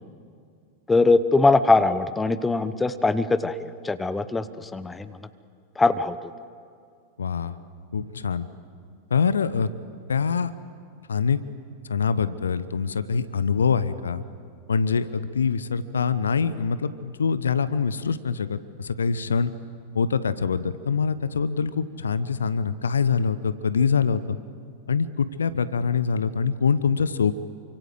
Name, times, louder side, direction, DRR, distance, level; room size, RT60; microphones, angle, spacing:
voice 1, 0.9-3.5 3.8-4.4 4.7-5.1 5.8-6.2, left 3 dB, 10° left, 13 dB, 1.1 m, -21 dB
voice 2, 7.2-7.5 7.9-8.5 9.1-9.7 10.1-10.5 11.1-11.4 11.9-14.2 14.7-19.5 19.9-24.4 24.9-27.3, left 6 dB, 70° left, 15 dB, 0.9 m, -24 dB
28.5 x 25.0 x 7.8 m, 2.3 s
figure-of-eight pair, 90°, 0 cm